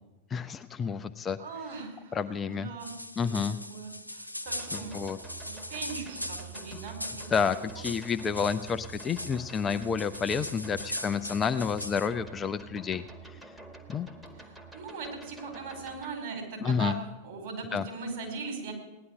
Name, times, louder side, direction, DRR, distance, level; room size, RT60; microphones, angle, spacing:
voice 1, 0.3-1.4 2.1-2.7 3.2-3.6 4.7-5.2 7.3-13.0 13.9-14.1 16.6-16.9 17.7-17.8, left 6 dB, 20° left, 10 dB, 0.6 m, -30 dB
voice 2, 1.4-2.9 3.2-3.4 3.7-4.9 5.4-7.3 7.6-7.8 14.3-16.9 17.2-18.7, right 4 dB, 50° right, 2 dB, 4.8 m, -40 dB
sound 1, 2.8-12.1, left 1 dB, 85° left, 0.9 m, -41 dB
sound 2, 4.5-16.1, right 4 dB, 5° right, 2.0 m, -47 dB
17.5 x 11.0 x 6.6 m, 1.0 s
figure-of-eight pair, 90°, 0 cm